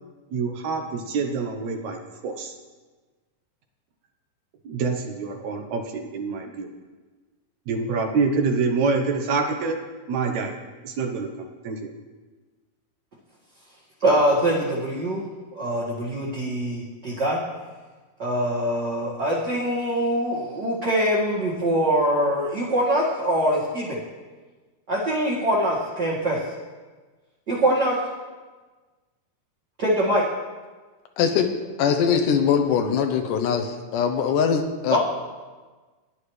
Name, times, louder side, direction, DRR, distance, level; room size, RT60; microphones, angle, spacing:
voice 1, 0.3-2.5 4.6-6.7 7.7-9.8 10.1-10.6 10.8-11.3 11.6-11.9, right 4 dB, 70° right, 4 dB, 2.1 m, -26 dB
voice 2, 14.0-15.2 15.5-17.4 18.2-24.0 24.9-26.4 27.5-27.9 29.8-30.2 34.9-35.0, right 1 dB, 35° right, -8 dB, 2.0 m, -23 dB
voice 3, 31.2-31.5 31.8-35.0, left 7 dB, 80° left, 5 dB, 2.3 m, -22 dB
16.0 x 10.5 x 3.3 m, 1.3 s
omnidirectional pair, 3.8 m